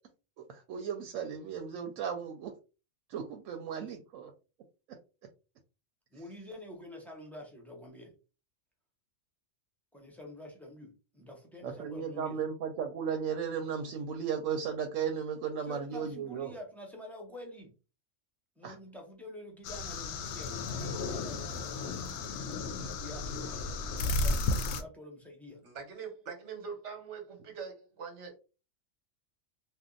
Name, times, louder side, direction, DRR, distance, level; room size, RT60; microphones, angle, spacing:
voice 1, 0.4-2.5 3.1-4.3 11.6-16.5 18.6-18.8, right 7 dB, 85° right, 0.9 m, -35 dB
voice 2, 6.1-8.2 9.9-12.4 15.6-17.7 18.6-23.4 23.9-25.6, left 1 dB, ahead, 0.6 m, -48 dB
sound 1, 19.6-24.8, left 3 dB, 70° left, 0.8 m, -34 dB
voice 3, 25.6-28.4, right 6 dB, 65° right, 1.2 m, -43 dB
2.7 x 2.2 x 3.7 m
omnidirectional pair, 1.3 m